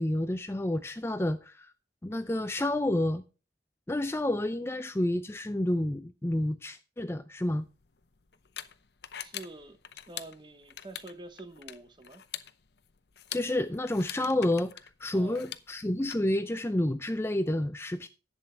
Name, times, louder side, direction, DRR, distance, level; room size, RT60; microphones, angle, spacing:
voice 1, 0.0-1.7 2.0-3.2 3.9-7.6 13.3-14.7 15.0-18.1, left 1 dB, 15° left, 0.4 m, -29 dB
sound 1, 7.4-16.1, left 11 dB, 60° left, 0.7 m, -45 dB
voice 2, 9.2-9.8 10.1-12.2 15.1-15.5, right 2 dB, 25° right, 1.0 m, -47 dB
11.0 x 8.1 x 4.4 m
head